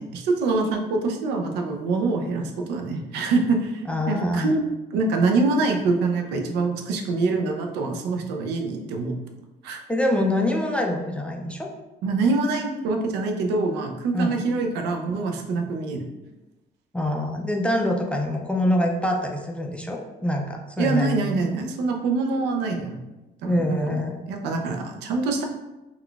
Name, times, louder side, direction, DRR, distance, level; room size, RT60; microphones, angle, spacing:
voice 1, 0.0-4.6 4.9-9.2 9.6-9.8 12.0-16.1 20.8-23.0 23.4-24.0 24.3-25.4, right 3 dB, 85° right, 3 dB, 0.5 m, -25 dB
voice 2, 3.9-4.5 9.9-11.7 14.1-14.4 16.9-21.2 23.5-24.2, left 1 dB, 5° left, 1 dB, 0.3 m, -25 dB
3.6 x 2.2 x 2.3 m, 1.0 s
cardioid pair, 110°, 17 cm